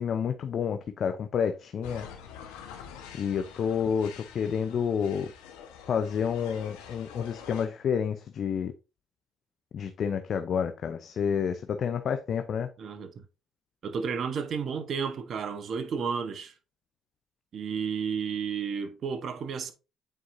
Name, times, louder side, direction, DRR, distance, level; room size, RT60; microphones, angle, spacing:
voice 1, 0.0-2.1 3.2-5.3 5.9-8.7 9.7-12.7, left 7 dB, 60° left, 0.6 m, -29 dB
sound 1, 1.8-7.7, left 7 dB, 90° left, 1.2 m, -46 dB
voice 2, 12.8-13.2 13.8-16.5 17.5-19.7, right 6 dB, 55° right, 1.1 m, -32 dB
9.1 x 4.6 x 2.7 m
supercardioid pair, 60°, 0 cm